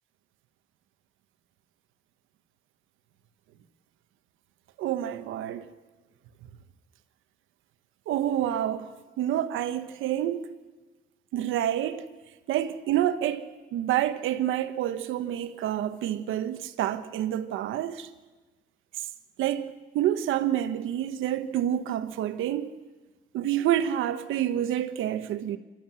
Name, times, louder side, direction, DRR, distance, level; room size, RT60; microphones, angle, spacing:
voice 1, 4.8-5.7 8.1-10.5 11.3-12.1 12.5-13.5 13.7-18.1 19.0-19.1 19.4-22.7 23.3-25.6, right 11 dB, 90° right, 1.2 m, -28 dB
26.5 x 13.0 x 7.6 m
cardioid pair, 90°, 20 cm